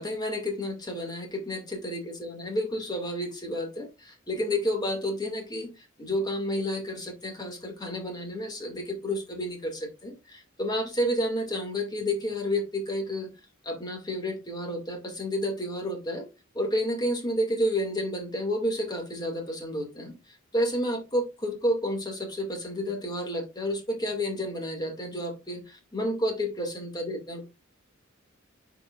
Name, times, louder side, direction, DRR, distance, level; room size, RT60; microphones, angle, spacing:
voice 1, 0.0-13.3 13.6-16.3 16.5-20.1 20.5-27.4, equal, 20° left, 2.2 m, -30 dB
10.5 x 4.8 x 2.5 m
head